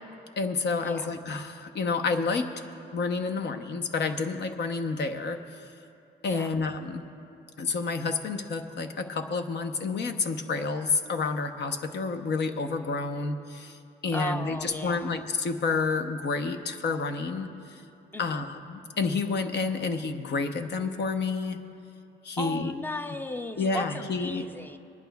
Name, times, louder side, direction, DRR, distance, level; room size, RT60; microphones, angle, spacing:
voice 1, 0.4-2.5 2.9-5.4 6.2-7.0 7.6-17.8 18.2-21.6 22.2-22.7 23.6-24.5, left 4 dB, 60° left, 7 dB, 0.9 m, -29 dB
voice 2, 14.1-15.1 18.1-18.4 22.4-24.8, left 1 dB, 10° left, 8 dB, 0.5 m, -35 dB
26.5 x 11.0 x 2.3 m, 2.6 s
cardioid pair, 90°, 20 cm